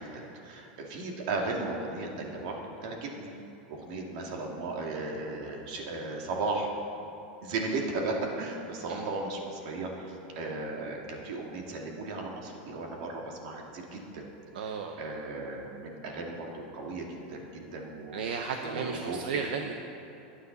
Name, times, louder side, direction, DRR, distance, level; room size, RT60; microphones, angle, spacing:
voice 1, 0.0-3.3 3.7-6.7 7.4-14.3 14.6-18.2 18.6-19.2, right 3 dB, 50° right, 0 dB, 2.4 m, -36 dB
voice 2, 14.5-15.0 18.1-19.7, right 6 dB, 70° right, 4 dB, 0.9 m, -34 dB
23.5 x 9.6 x 4.1 m, 2.9 s
supercardioid pair, 175°, 5 cm